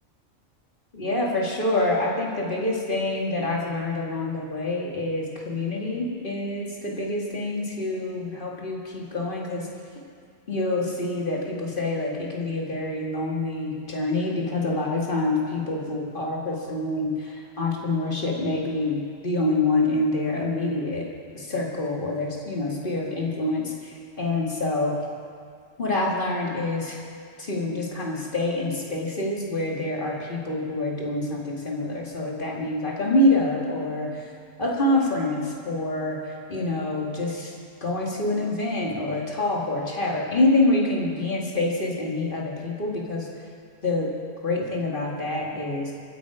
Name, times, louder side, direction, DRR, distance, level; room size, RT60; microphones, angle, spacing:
voice 1, 0.9-9.7 10.5-21.0 21.3-24.9 25.8-27.0 27.4-34.3 34.6-37.5 37.8-43.3 43.8-44.1 44.4-45.9, left 2 dB, 45° left, -2 dB, 2.3 m, -26 dB
23.5 x 9.5 x 5.0 m, 2.2 s
omnidirectional pair, 1.3 m